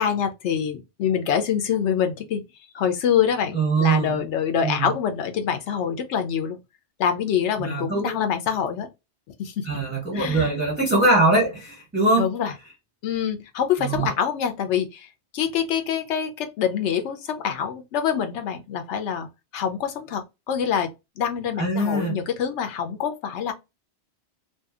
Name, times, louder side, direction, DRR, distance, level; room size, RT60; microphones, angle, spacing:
voice 1, 0.0-2.4 2.7-6.6 7.0-8.9 9.4-9.7 10.1-10.5 12.2-12.5 13.0-19.3 19.5-23.5, left 8 dB, 85° left, 0.9 m, -25 dB
voice 2, 3.5-4.2 4.6-4.9 7.6-8.1 9.7-12.3 13.8-14.1 21.6-22.2, right 2 dB, 10° right, 0.8 m, -22 dB
2.6 x 2.3 x 2.3 m
omnidirectional pair, 1.2 m